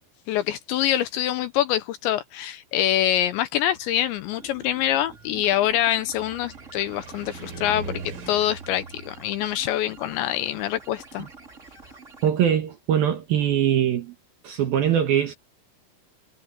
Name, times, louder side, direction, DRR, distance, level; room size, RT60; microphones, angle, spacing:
voice 1, 0.3-11.3, left 12 dB, 80° left, 2.8 m, -25 dB
Car, 3.8-12.0, right 5 dB, 80° right, 7.7 m, -42 dB
sound 1, 4.3-12.3, right 4 dB, 20° right, 2.6 m, -47 dB
voice 2, 12.2-14.1 14.4-15.4, right 9 dB, 65° right, 2.5 m, -22 dB
omnidirectional pair, 5.8 m